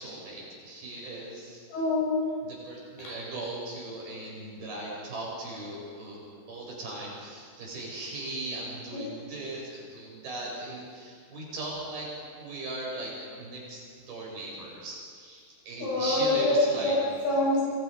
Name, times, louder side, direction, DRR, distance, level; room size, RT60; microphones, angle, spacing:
voice 1, 0.0-1.6 2.7-6.2 6.5-17.0, right 2 dB, 55° right, -3 dB, 9.1 m, -38 dB
voice 2, 1.7-2.2 8.9-9.1 15.8-16.6 16.8-17.6, left 2 dB, 85° left, -7 dB, 9.3 m, -26 dB
28.5 x 25.0 x 5.4 m, 2.1 s
omnidirectional pair, 5.1 m